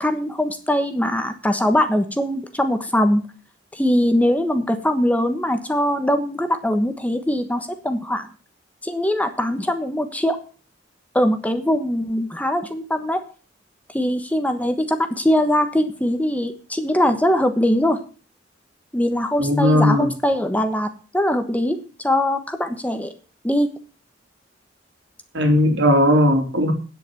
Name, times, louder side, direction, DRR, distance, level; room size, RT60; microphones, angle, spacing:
voice 1, 0.0-3.2 3.7-8.3 8.8-10.4 11.1-13.2 13.9-18.0 18.9-23.1 23.4-23.7, left 1 dB, 10° left, 8 dB, 1.2 m, -21 dB
voice 2, 19.4-20.1 25.3-26.7, left 1 dB, 75° right, 4 dB, 3.2 m, -17 dB
9.3 x 8.4 x 7.7 m, 0.37 s
head